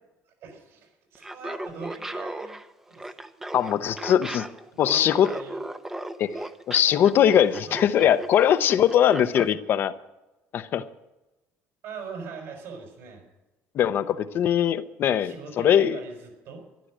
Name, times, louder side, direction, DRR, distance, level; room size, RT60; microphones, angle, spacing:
voice 1, 0.3-2.6 2.9-3.1 3.6-4.3 4.7-5.6 7.7-8.1 11.8-13.2 15.2-16.6, right 4 dB, 65° right, 2 dB, 5.7 m, -41 dB
Laughter, 1.1-9.5, right 1 dB, 10° right, 0.8 m, -36 dB
voice 2, 3.5-4.5 4.8-5.3 6.2-6.4 6.7-9.9 10.5-10.8 13.7-16.0, left 10 dB, 50° left, 13 dB, 0.8 m, -21 dB
13.0 x 11.5 x 7.5 m, 1.0 s
cardioid pair, 135°, 5 cm